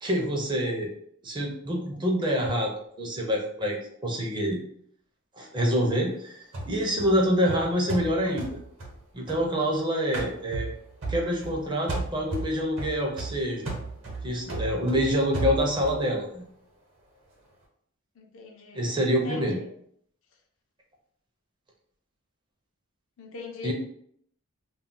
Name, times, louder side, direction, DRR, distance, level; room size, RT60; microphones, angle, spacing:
voice 1, 0.0-0.9 1.2-2.7 3.0-4.6 5.4-6.4 6.7-8.6 9.1-10.7 11.1-13.7 14.2-16.4 18.7-19.6 23.6-23.7, equal, 20° right, 0 dB, 0.5 m, -26 dB
sound 1, 6.5-9.8 10.1-11.6 11.9-16.0, right 2 dB, 65° right, 0.9 m, -35 dB
voice 2, 18.1-19.7 23.2-23.7, left 3 dB, 65° left, 2 dB, 0.6 m, -40 dB
2.3 x 2.1 x 3.7 m, 0.67 s
head